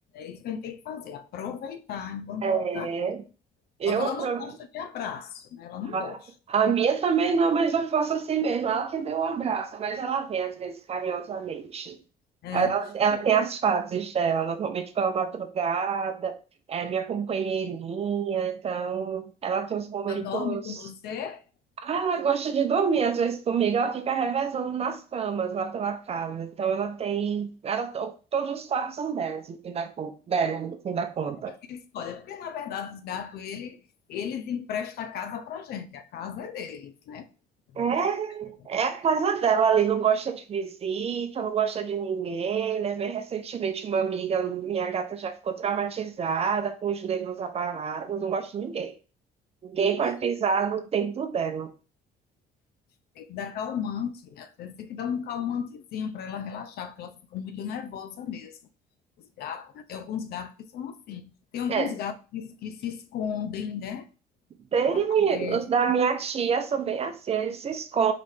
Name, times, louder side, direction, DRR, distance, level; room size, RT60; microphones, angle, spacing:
voice 1, 0.1-2.9 3.9-6.2 12.4-12.8 13.1-13.2 20.1-21.4 31.4-33.8 34.1-37.3 37.7-38.0 38.6-38.7 53.2-58.6 59.2-64.1 64.9-65.0 65.3-65.7, left 8 dB, 65° left, 0.6 m, -35 dB
voice 2, 2.4-3.2 3.8-4.5 5.9-6.1 6.5-12.0 12.5-16.4 16.7-20.6 21.8-31.5 37.8-48.9 49.6-51.7 61.7-61.9 64.7-68.1, right 6 dB, 35° right, 0.6 m, -27 dB
4.1 x 3.2 x 3.3 m
cardioid pair, 110°, 17 cm